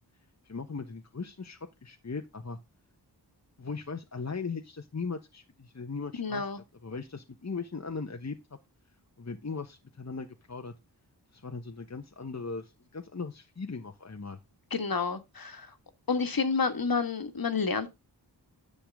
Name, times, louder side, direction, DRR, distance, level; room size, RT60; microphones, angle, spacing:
voice 1, 0.4-2.6 3.6-6.4 6.8-8.6 9.2-10.7 11.3-14.4, left 4 dB, 40° left, 1.2 m, -38 dB
voice 2, 6.2-6.6 14.7-15.7 16.1-17.9, left 5 dB, 55° left, 1.9 m, -29 dB
10.5 x 7.1 x 3.7 m
wide cardioid pair, 60°, 42 cm